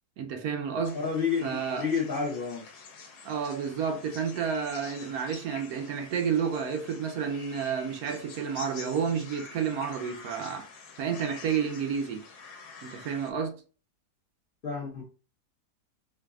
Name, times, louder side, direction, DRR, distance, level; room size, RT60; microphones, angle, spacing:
voice 1, 0.2-1.0 1.4-1.9 3.2-10.7 11.0-12.2 12.8-13.6, right 7 dB, 70° right, 1.0 m, -30 dB
sound 1, 0.8-13.3, left 5 dB, 75° left, 1.2 m, -48 dB
voice 2, 0.9-2.7 14.6-15.0, left 6 dB, 45° left, 0.8 m, -30 dB
4.6 x 2.5 x 2.3 m
omnidirectional pair, 1.7 m